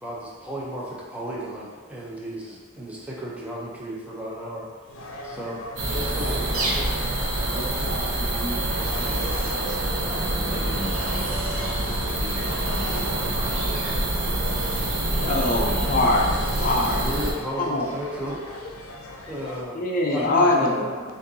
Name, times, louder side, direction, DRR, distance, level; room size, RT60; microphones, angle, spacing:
voice 1, 0.0-4.7 5.2-5.6 5.9-6.9 16.7-18.9 19.3-19.8 20.1-20.9, equal, 5° right, -6 dB, 0.7 m, -34 dB
sound 1, 4.9-19.6, left 1 dB, 90° left, 0.6 m, -39 dB
sound 2, 5.8-17.3, right 1 dB, 70° right, 0.8 m, -26 dB
voice 2, 7.4-11.4 12.1-13.1 20.3-21.0, equal, 40° right, -6 dB, 1.2 m, -37 dB
voice 3, 15.1-16.3 16.6-17.0 17.6-17.9 19.7-20.8, left 2 dB, 45° left, 0 dB, 0.5 m, -22 dB
6.3 x 2.6 x 2.8 m, 1.4 s
head